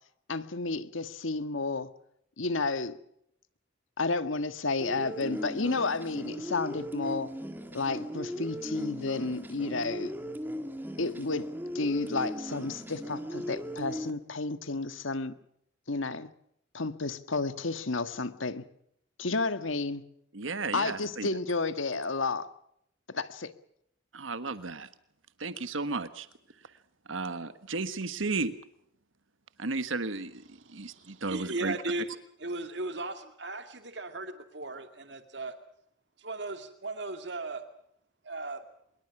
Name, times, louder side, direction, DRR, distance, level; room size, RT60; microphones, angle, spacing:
voice 1, 0.3-1.9 2.4-3.0 4.0-7.3 7.7-10.1 11.0-11.5 11.7-15.3 15.9-16.3 16.7-18.6 19.2-20.0 20.7-22.5 23.1-23.5, left 3 dB, 80° left, 11 dB, 1.6 m, -31 dB
sound 1, 4.8-14.1, equal, 10° right, 2.2 m, -38 dB
voice 2, 20.3-21.3 24.1-24.9 25.4-26.3 27.1-28.5 29.6-31.8, right 3 dB, 85° right, 12 dB, 1.4 m, -34 dB
voice 3, 30.8-32.0 32.4-35.5 36.2-37.6 38.2-38.6, right 2 dB, 60° right, 7 dB, 2.3 m, -37 dB
24.5 x 22.5 x 6.0 m, 0.72 s
head